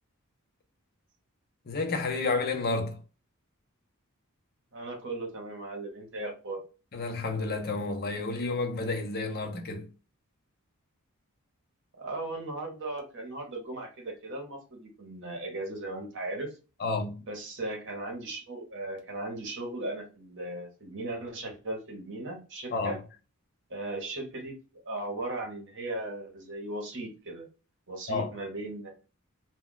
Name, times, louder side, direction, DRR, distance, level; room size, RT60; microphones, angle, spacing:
voice 1, 1.7-3.0 6.9-9.9 16.8-17.2 22.7-23.0 28.1-28.3, left 3 dB, 45° left, 0.5 m, -30 dB
voice 2, 4.7-6.6 12.0-16.5 17.3-23.0 23.7-24.5 24.8-27.5 27.9-28.9, right 2 dB, 55° right, 0.9 m, -37 dB
2.3 x 2.2 x 3.7 m
head